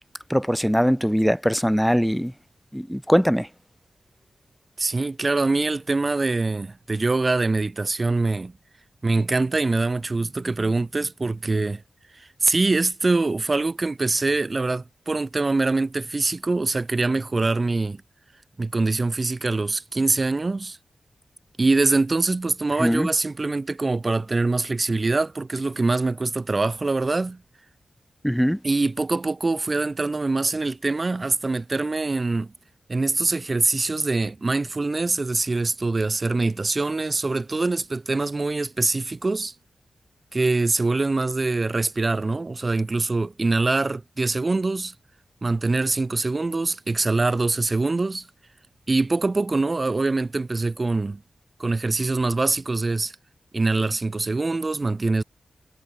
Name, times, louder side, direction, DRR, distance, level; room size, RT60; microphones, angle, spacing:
voice 1, 0.3-2.3 2.7-3.5 22.8-23.1 28.2-28.6, equal, ahead, 2.0 m, -21 dB
voice 2, 4.8-8.5 9.0-11.8 12.1-18.0 18.6-20.8 21.6-27.4 28.6-32.5 32.9-39.5 40.3-44.9 45.4-48.3 48.9-51.2 51.6-53.1 53.5-55.2, right 3 dB, 25° right, 3.3 m, -24 dB
wide cardioid pair, 175°, 0 cm